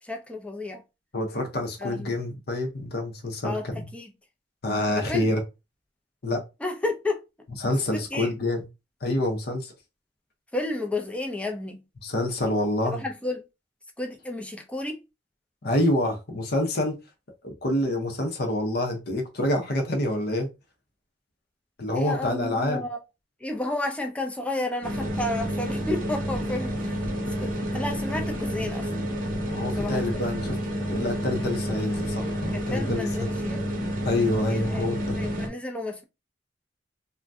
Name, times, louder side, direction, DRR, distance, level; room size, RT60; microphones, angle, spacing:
voice 1, 0.0-0.8 1.8-2.2 3.4-3.7 3.9-4.1 4.9-5.4 6.6-7.2 7.9-8.3 10.5-11.8 12.9-13.4 14.0-15.0 21.9-23.0 23.4-27.0 27.4-28.9 29.8-30.2 32.5-33.7 34.5-36.0, left 2 dB, 5° left, 0.5 m, -32 dB
voice 2, 1.1-3.8 4.6-5.4 6.2-6.4 7.6-8.6 9.0-9.7 12.0-13.0 15.6-17.0 17.4-20.5 21.8-22.8 29.5-30.6 30.9-33.3 34.0-35.2, left 1 dB, 55° left, 0.7 m, -27 dB
sound 1, 24.8-35.5, equal, 45° right, 0.8 m, -29 dB
2.6 x 2.2 x 3.4 m
head